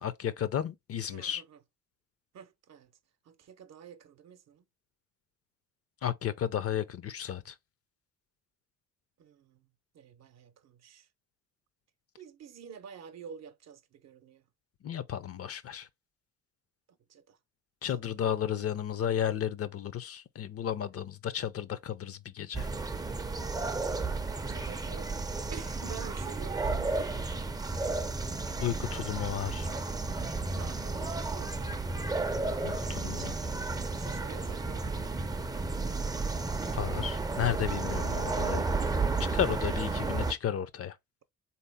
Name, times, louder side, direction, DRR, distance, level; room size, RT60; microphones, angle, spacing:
voice 1, 0.0-1.4 6.0-7.5 14.8-15.9 17.8-22.7 28.6-29.7 32.6-33.3 36.7-38.7 39.2-40.9, left 9 dB, 50° left, 0.5 m, -33 dB
voice 2, 1.1-1.6 2.3-2.9 3.2-4.6 9.2-9.7 9.9-11.1 12.2-14.4 16.9-17.4 17.8-18.3 24.3-27.3 30.5-31.8 33.1-33.4 33.9-35.1, right 7 dB, 60° right, 0.7 m, -49 dB
sound 1, 22.5-40.3, right 3 dB, 15° right, 0.4 m, -32 dB
3.8 x 2.8 x 3.5 m
cardioid pair, 90°, 30 cm